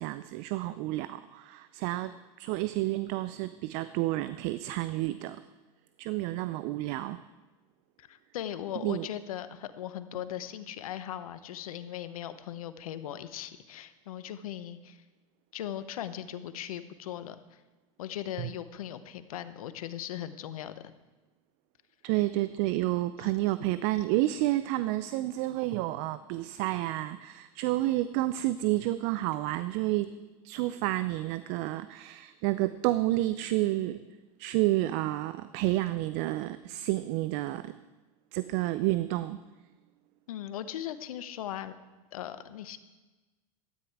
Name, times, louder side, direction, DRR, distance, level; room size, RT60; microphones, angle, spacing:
voice 1, 0.0-5.4 6.0-7.2 8.8-9.1 18.4-18.5 22.0-30.1 30.4-34.0 34.4-37.8 38.3-39.4, right 17 dB, 55° right, 14 dB, 0.5 m, -30 dB
voice 2, 8.0-15.0 15.5-17.6 18.0-20.7 23.2-23.3 40.3-41.7 42.1-42.8, left 11 dB, 85° left, 12 dB, 0.8 m, -39 dB
13.0 x 10.0 x 4.7 m, 1.2 s
hypercardioid pair, 100°, 18 cm